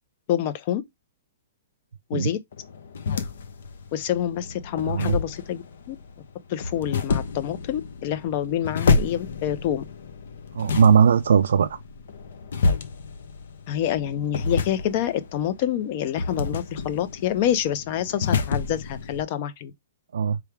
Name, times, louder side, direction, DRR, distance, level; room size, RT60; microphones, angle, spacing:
voice 1, 0.3-0.8 2.1-2.4 3.9-6.0 6.5-9.8 13.7-19.7, left 10 dB, 35° left, 0.6 m, -27 dB
sound 1, 2.5-19.2, left 4 dB, 70° left, 0.9 m, -29 dB
voice 2, 4.8-5.2 10.5-11.8 20.1-20.4, right 7 dB, 80° right, 0.5 m, -19 dB
4.6 x 3.4 x 3.4 m
hypercardioid pair, 175°, 0 cm